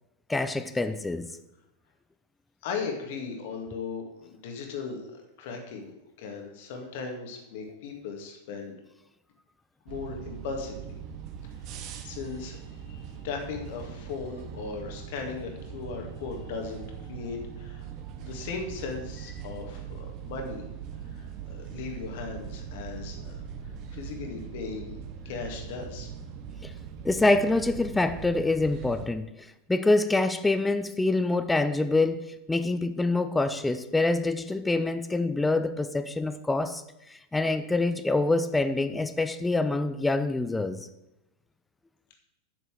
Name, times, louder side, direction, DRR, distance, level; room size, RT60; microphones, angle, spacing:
voice 1, 0.3-1.3 26.6-26.7 27.0-29.3 29.7-36.8 37.1-40.8, left 2 dB, 10° left, 0.7 m, -26 dB
voice 2, 2.6-8.8 9.9-11.0 12.0-12.6 12.9-17.9 18.2-20.6 21.1-23.4 23.9-26.1, left 5 dB, 50° left, 2.3 m, -37 dB
sound 1, 9.9-29.1, right 7 dB, 40° right, 1.2 m, -41 dB
8.0 x 6.9 x 7.6 m
figure-of-eight pair, 90°, 0 cm